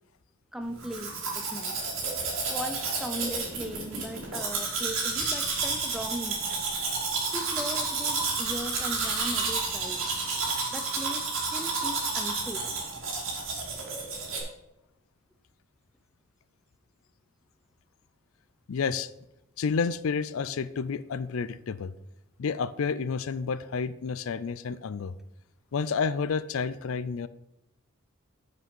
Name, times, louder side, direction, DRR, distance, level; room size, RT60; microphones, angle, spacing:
voice 1, 0.5-1.8 2.5-6.6 7.3-10.1 10.7-12.6, equal, ahead, 6 dB, 0.6 m, -38 dB
Domestic sounds home sounds, 0.8-14.4, right 4 dB, 70° right, 2.9 m, -31 dB
voice 2, 18.7-19.1 19.6-22.0 22.4-25.1 25.7-27.3, left 5 dB, 80° left, 16 dB, 0.4 m, -30 dB
7.5 x 6.2 x 5.4 m, 0.89 s
head